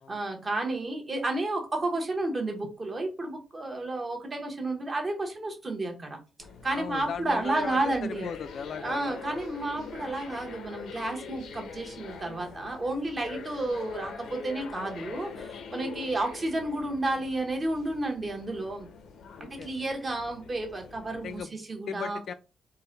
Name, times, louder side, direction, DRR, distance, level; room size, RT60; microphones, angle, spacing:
voice 1, 0.0-6.2 6.6-8.3 8.8-18.9 19.4-22.2, right 2 dB, 30° right, 1.0 m, -31 dB
sound 1, 6.4-21.4, left 5 dB, 90° left, 0.7 m, -44 dB
voice 2, 6.7-9.2 19.3-19.7 21.1-21.5 21.9-22.3, left 6 dB, 60° left, 0.3 m, -37 dB
3.8 x 2.2 x 3.9 m
cardioid pair, 130°, 0 cm